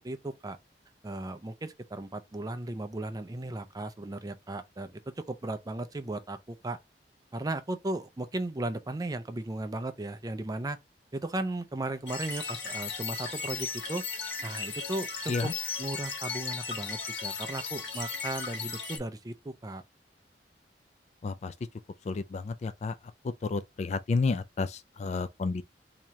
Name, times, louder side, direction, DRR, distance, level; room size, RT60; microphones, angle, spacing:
voice 1, 0.0-0.6 1.0-6.8 7.3-10.8 11.1-14.0 14.4-19.8, right 2 dB, 20° right, 0.4 m, -36 dB
sound 1, 12.1-19.0, left 5 dB, 85° left, 1.4 m, -36 dB
voice 2, 21.2-21.5 22.1-22.9 23.4-25.6, left 4 dB, 40° left, 0.3 m, -31 dB
3.1 x 2.8 x 3.5 m
head